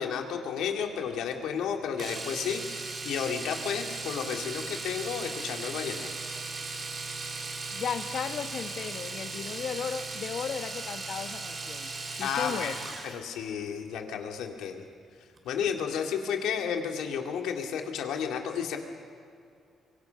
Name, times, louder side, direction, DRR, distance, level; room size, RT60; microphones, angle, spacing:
voice 1, 0.0-6.1 12.2-14.8 15.4-18.8, left 7 dB, 85° left, 3 dB, 2.4 m, -32 dB
Domestic sounds home sounds, 2.0-13.2 15.4-15.5 15.8-15.9, right 3 dB, 40° right, 3.1 m, -37 dB
voice 2, 7.7-11.9 12.2-12.8, left 7 dB, 65° left, 8 dB, 1.4 m, -35 dB
24.0 x 22.5 x 5.9 m, 2.4 s
cardioid pair, 90°, 0 cm